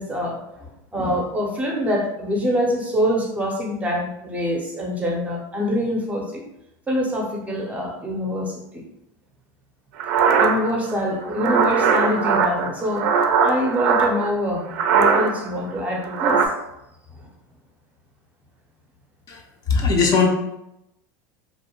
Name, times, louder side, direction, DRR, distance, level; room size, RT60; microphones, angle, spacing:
voice 1, 0.0-6.4 6.9-8.8 10.4-16.4, equal, 15° right, 0 dB, 0.5 m, -25 dB
sound 1, 10.0-14.3 14.7-15.5 15.8-16.5, right 6 dB, 75° right, 0.4 m, -20 dB
voice 2, 19.7-20.3, left 5 dB, 35° left, 1 dB, 0.5 m, -18 dB
2.5 x 2.1 x 2.8 m, 0.85 s
supercardioid pair, 130°, 10 cm